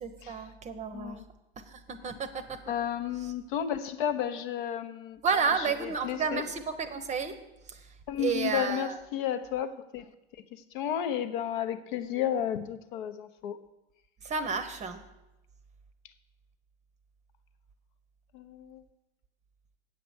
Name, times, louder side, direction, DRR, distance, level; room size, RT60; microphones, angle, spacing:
voice 1, 0.0-1.2 1.6-2.6 5.2-7.4 7.7-7.8 8.2-9.0 14.2-15.0, right 5 dB, 25° right, 10 dB, 0.8 m, -31 dB
voice 2, 0.9-1.2 2.7-5.2 5.6-6.5 8.1-10.1 10.5-13.6 18.3-18.8, left 9 dB, 55° left, 12 dB, 0.8 m, -33 dB
8.5 x 6.9 x 6.3 m, 0.96 s
figure-of-eight pair, 85°, 31 cm